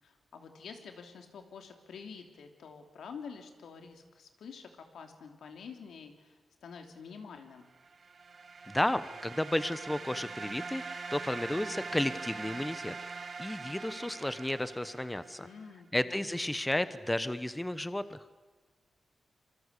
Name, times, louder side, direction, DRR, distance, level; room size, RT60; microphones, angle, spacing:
voice 1, 0.0-7.7 15.4-16.5, left 6 dB, 85° left, 5 dB, 3.1 m, -48 dB
sound 1, 7.8-15.6, right 4 dB, 50° right, 1.9 m, -43 dB
voice 2, 8.7-12.9 13.4-15.5 15.9-18.2, left 1 dB, 10° left, 13 dB, 1.0 m, -33 dB
26.0 x 23.5 x 8.4 m, 1.3 s
cardioid pair, 100°, 0 cm